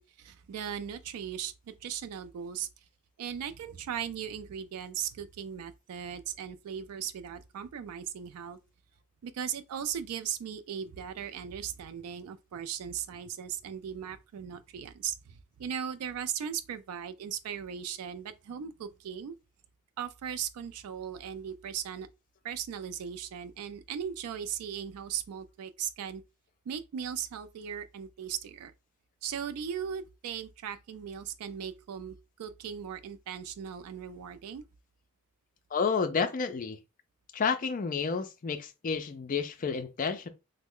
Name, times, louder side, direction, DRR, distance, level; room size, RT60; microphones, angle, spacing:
voice 1, 0.0-2.7 3.2-8.6 9.2-19.3 20.0-22.1 22.4-26.2 26.7-28.7 29.2-34.6, right 8 dB, 80° right, 0.3 m, -38 dB
voice 2, 35.7-36.8 37.3-40.3, left 5 dB, 35° left, 0.4 m, -30 dB
3.1 x 2.0 x 3.6 m
head